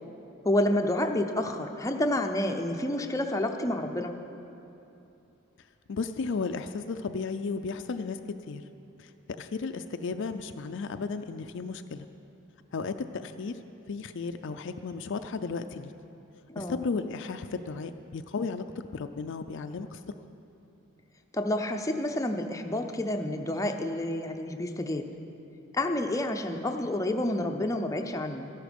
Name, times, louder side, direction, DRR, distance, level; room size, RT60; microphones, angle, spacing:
voice 1, 0.4-4.1 16.5-16.8 21.3-25.1 25.7-28.5, left 1 dB, 15° left, 4 dB, 0.6 m, -29 dB
voice 2, 5.9-8.6 9.0-12.1 12.7-13.6 13.9-15.9 16.6-20.0 26.6-26.7, left 4 dB, 60° left, 8 dB, 0.4 m, -34 dB
13.5 x 11.0 x 5.2 m, 2.9 s
head